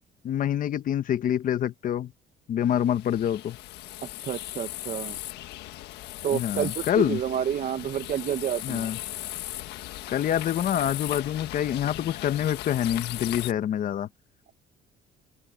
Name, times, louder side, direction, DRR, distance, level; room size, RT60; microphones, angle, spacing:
voice 1, 0.2-2.1 2.5-3.6 6.3-7.2 8.6-9.0 10.1-14.1, left 10 dB, 55° left, 1.2 m, -26 dB
sound 1, 2.6-13.5, left 15 dB, 85° left, 1.4 m, -38 dB
voice 2, 4.2-5.2 6.2-8.9, right 9 dB, 55° right, 1.4 m, -29 dB
open air
cardioid pair, 110°, 17 cm